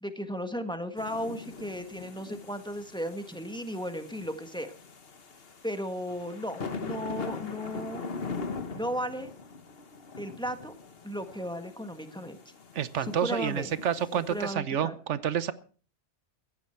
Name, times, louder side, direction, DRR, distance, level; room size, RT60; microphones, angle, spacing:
voice 1, 0.0-4.7 5.6-8.0 8.7-9.3 10.2-10.7 11.0-12.4 13.0-13.7 14.3-14.9, equal, 5° left, 7 dB, 1.5 m, -35 dB
sound 1, 1.0-14.5, left 4 dB, 55° left, 1.5 m, -41 dB
voice 2, 12.7-15.5, right 9 dB, 80° right, 15 dB, 1.2 m, -29 dB
15.0 x 15.0 x 4.5 m, 0.40 s
omnidirectional pair, 1.2 m